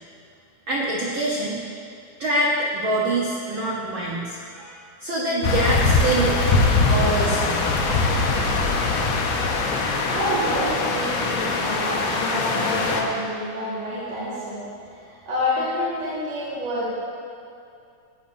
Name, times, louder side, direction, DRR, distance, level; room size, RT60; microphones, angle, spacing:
voice 1, 0.7-1.6 2.2-6.4 6.8-7.6, right 1 dB, 90° right, -5 dB, 1.1 m, -25 dB
sound 1, 5.4-13.0, left 3 dB, 70° left, 1.8 m, -22 dB
voice 2, 10.1-14.6 14.9-16.9, left 1 dB, 65° right, -11 dB, 2.6 m, -28 dB
14.0 x 7.2 x 2.6 m, 2.5 s
omnidirectional pair, 3.4 m